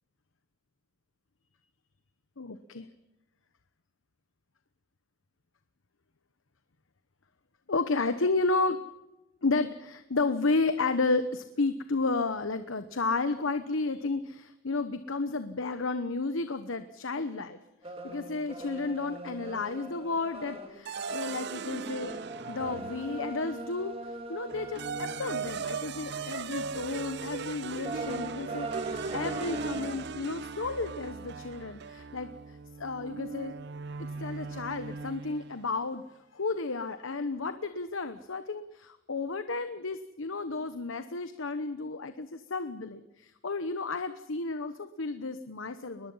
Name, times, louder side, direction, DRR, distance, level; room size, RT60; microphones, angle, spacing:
voice 1, 2.4-2.9 7.7-8.8 9.4-17.6 17.8-22.1 22.5-33.5 34.2-36.0 36.3-46.1, left 3 dB, 85° left, 11 dB, 1.0 m, -32 dB
sound 1, 17.8-26.1 26.6-26.8 27.2-30.0, right 2 dB, 30° right, 2.5 m, -41 dB
sound 2, 20.8-23.4 24.5-35.6, right 5 dB, 60° right, 0.6 m, -38 dB
22.0 x 21.0 x 5.7 m, 0.99 s
head